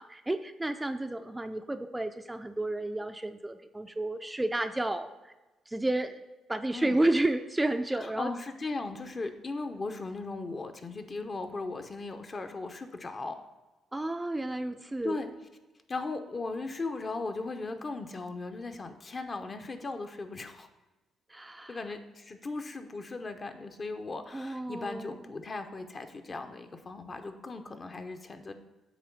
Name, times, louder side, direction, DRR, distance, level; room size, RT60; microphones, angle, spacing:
voice 1, 0.0-5.3 5.7-6.2 6.5-8.3 13.9-15.2 21.3-21.8 24.3-25.3, right 1 dB, 15° right, 8 dB, 0.4 m, -31 dB
voice 2, 7.9-13.4 15.0-15.3 15.9-20.7 21.7-28.5, left 3 dB, 40° left, 7 dB, 0.7 m, -37 dB
8.3 x 3.1 x 6.0 m, 1.1 s
cardioid pair, 75°, 0 cm